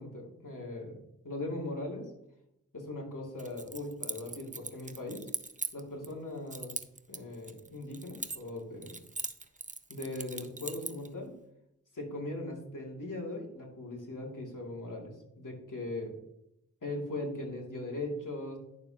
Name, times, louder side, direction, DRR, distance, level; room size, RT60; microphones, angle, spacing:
voice 1, 0.0-2.1 2.7-5.3 5.7-6.7 7.1-9.0 9.9-11.3 11.9-16.1 16.8-18.6, left 2 dB, 70° left, -1 dB, 2.6 m, -39 dB
Keys jangling, 3.4-6.1 6.5-8.6 8.8-11.1, right 3 dB, 25° right, 0.7 m, -40 dB
10.5 x 6.9 x 2.9 m, 0.81 s
cardioid pair, 40°, 32 cm